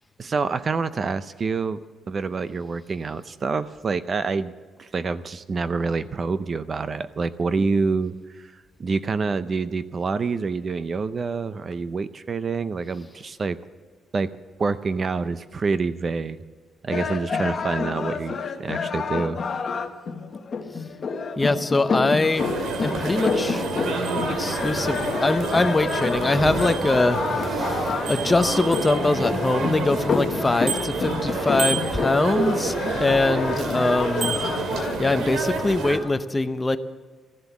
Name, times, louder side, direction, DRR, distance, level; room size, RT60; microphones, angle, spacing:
voice 1, 0.2-1.8 2.1-4.5 4.8-13.6 14.1-14.3 14.6-16.4 16.8-19.4, right 4 dB, 30° right, 14 dB, 0.5 m, -27 dB
sound 1, 16.9-35.0, left 5 dB, 35° left, 1.1 m, -29 dB
voice 2, 21.4-22.5 22.8-23.6 24.4-34.4 35.0-36.8, left 2 dB, 15° left, 10 dB, 0.6 m, -23 dB
sound 2, 22.4-36.0, right 3 dB, 70° right, 2.1 m, -28 dB
14.0 x 11.5 x 7.2 m, 1.4 s
cardioid pair, 150°, 0 cm